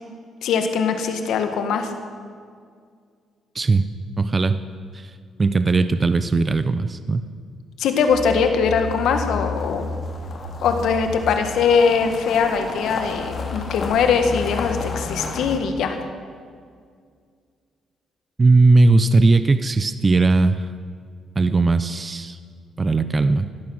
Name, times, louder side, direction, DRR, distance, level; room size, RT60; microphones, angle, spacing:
voice 1, 0.4-1.9 7.8-9.9 10.6-16.0, left 6 dB, 80° left, 6 dB, 1.7 m, -21 dB
voice 2, 3.5-3.9 4.2-4.6 4.9-5.1 5.4-7.2 18.4-20.7 21.4-22.4 22.8-23.5, right 3 dB, 30° right, 11 dB, 0.6 m, -18 dB
sound 1, 8.1-15.6, left 4 dB, 50° left, 2.4 m, -31 dB
16.5 x 12.0 x 6.4 m, 2.1 s
cardioid pair, 90°, 0 cm